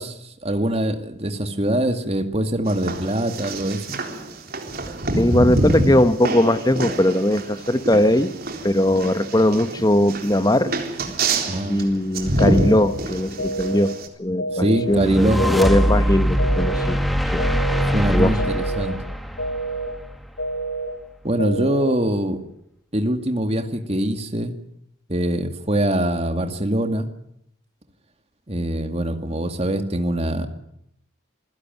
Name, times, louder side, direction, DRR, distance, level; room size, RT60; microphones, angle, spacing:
voice 1, 0.0-4.0 11.4-11.8 14.5-15.4 17.9-19.0 21.2-22.4 22.9-24.5 25.1-27.1 28.5-30.5, right 1 dB, 30° right, 7 dB, 2.3 m, -23 dB
sound 1, 2.7-14.1, right 1 dB, 50° right, 3.8 m, -26 dB
voice 2, 5.2-8.3 8.6-10.7 11.7-13.9 14.2-17.0 17.3-17.4 18.1-18.3, left 1 dB, 20° left, 11 dB, 1.1 m, -19 dB
sound 2, 12.4-12.9 13.4-13.9 14.4-14.9 15.4-15.9 16.4-16.9 17.4-17.9 18.4-18.9 19.4-19.9 20.4-20.9 21.4-21.9, right 2 dB, 75° left, 4.7 m, -28 dB
sound 3, 14.9-20.2, equal, ahead, 1.9 m, -22 dB
27.0 x 16.5 x 9.3 m, 0.75 s
head